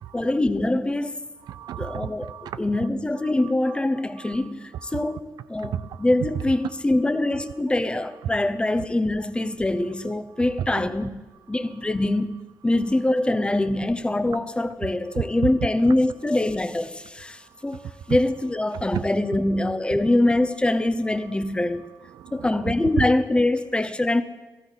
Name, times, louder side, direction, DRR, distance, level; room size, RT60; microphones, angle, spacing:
voice 1, 0.1-1.2 1.8-2.3 2.6-11.1 11.5-17.8 18.1-21.8 22.3-24.2, left 1 dB, 15° left, 0.8 m, -24 dB
voice 2, 1.4-2.9 3.2-3.8 4.2-5.2 5.7-6.1 6.3-6.7 7.3-7.4 8.1-8.3 10.6-11.1 11.6-11.9 14.8-14.9 15.1-15.5 18.1-18.2 18.7-19.1 20.8-20.9 21.2-21.4 21.8-23.1, right 10 dB, 85° right, 0.4 m, -33 dB
14.0 x 13.5 x 4.1 m
cardioid pair, 85°, 7 cm